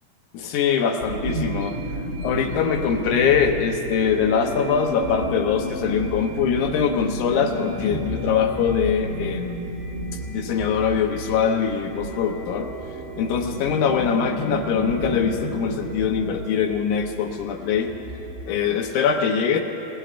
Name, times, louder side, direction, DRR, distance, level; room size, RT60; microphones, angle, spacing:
voice 1, 0.3-1.8 2.2-9.7 10.3-12.7 13.2-17.9 18.5-19.6, left 7 dB, 75° left, 4 dB, 1.9 m, -23 dB
sound 1, 1.0-18.5, right 2 dB, 90° right, 4.7 m, -34 dB
sound 2, 1.3-16.1, left 1 dB, 55° left, 1.7 m, -36 dB
28.0 x 18.5 x 2.5 m, 2.9 s
omnidirectional pair, 4.4 m